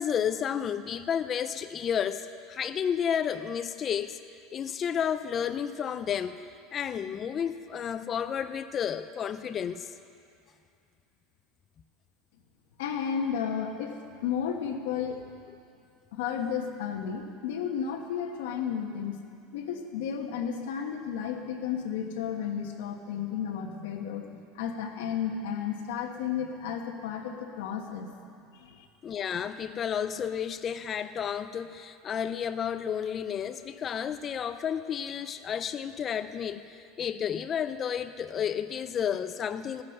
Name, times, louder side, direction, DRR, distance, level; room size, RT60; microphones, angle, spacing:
voice 1, 0.0-4.2 4.5-6.4 6.7-9.9 29.0-39.8, left 8 dB, 20° left, 10 dB, 0.4 m, -31 dB
voice 2, 12.8-15.2 16.1-19.2 19.5-28.1 28.5-28.9, left 7 dB, 85° left, 2 dB, 1.2 m, -33 dB
15.5 x 10.0 x 6.5 m, 2.4 s
supercardioid pair, 175°, 0 cm